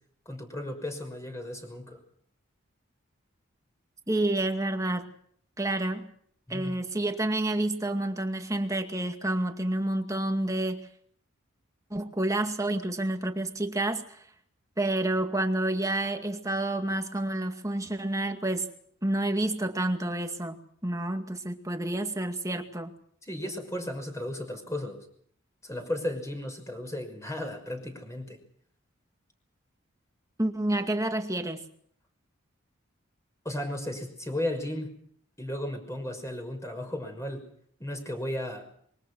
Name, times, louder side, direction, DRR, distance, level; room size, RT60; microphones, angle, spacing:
voice 1, 0.3-2.0 6.5-6.8 23.2-25.1 25.6-28.4 33.4-34.9 35.4-37.5 37.8-38.7, left 1 dB, 15° left, 4 dB, 6.0 m, -35 dB
voice 2, 4.1-5.1 5.6-6.1 6.5-10.9 11.9-14.2 14.8-18.7 19.0-22.9 30.4-31.7, right 1 dB, 15° right, 6 dB, 2.2 m, -29 dB
26.0 x 23.0 x 6.3 m, 0.63 s
head